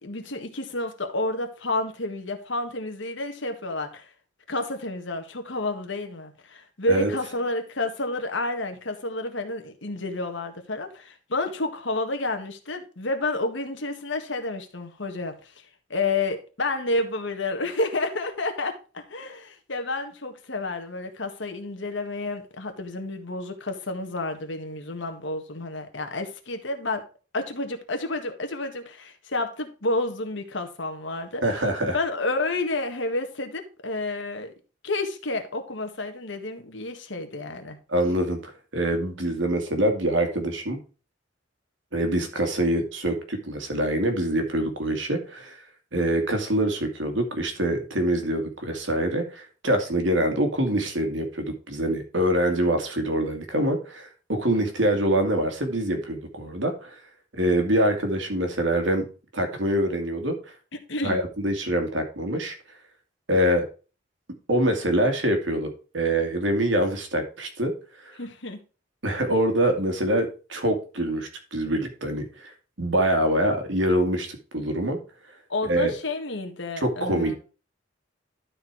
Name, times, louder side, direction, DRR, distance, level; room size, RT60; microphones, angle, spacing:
voice 1, 0.0-4.1 4.5-15.6 15.9-27.0 27.3-31.4 31.9-34.5 34.8-37.8 60.9-61.2 68.2-68.6 75.5-77.3, left 2 dB, 75° left, 1.7 m, -30 dB
voice 2, 31.4-32.0 37.9-40.8 41.9-45.6 45.9-57.0 57.3-59.1 59.3-60.4 61.0-62.6 63.3-63.7 64.5-67.7 68.0-68.1 69.0-75.0 75.6-75.9 76.8-77.3, right 1 dB, 75° right, 2.2 m, -25 dB
12.0 x 4.5 x 4.6 m
head